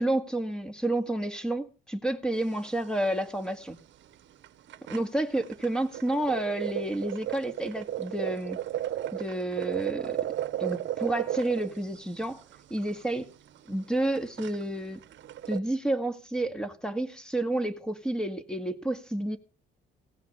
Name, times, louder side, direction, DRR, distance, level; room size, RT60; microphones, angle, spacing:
voice 1, 0.0-3.8 4.9-8.6 9.1-10.3 10.6-12.4 12.7-13.3 13.7-15.0 15.5-19.4, right 1 dB, 5° left, 2.1 m, -30 dB
sound 1, 2.3-2.8 3.1-3.2 3.5-3.6 4.1-4.2 4.4-15.6, right 12 dB, 70° right, 0.8 m, -34 dB
17.0 x 5.9 x 8.9 m
cardioid pair, 90°, 20 cm